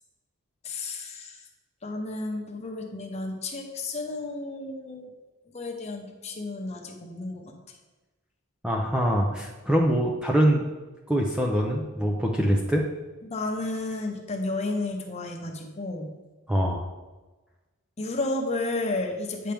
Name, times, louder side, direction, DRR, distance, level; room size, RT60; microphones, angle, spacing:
voice 1, 0.6-1.5 1.8-5.1 5.5-7.5 13.2-16.1 18.0-19.5, left 2 dB, 30° left, 2 dB, 0.9 m, -32 dB
voice 2, 8.6-10.7 11.1-12.9 16.5-16.8, equal, 5° right, 0 dB, 0.5 m, -24 dB
8.7 x 5.7 x 3.4 m, 1.2 s
head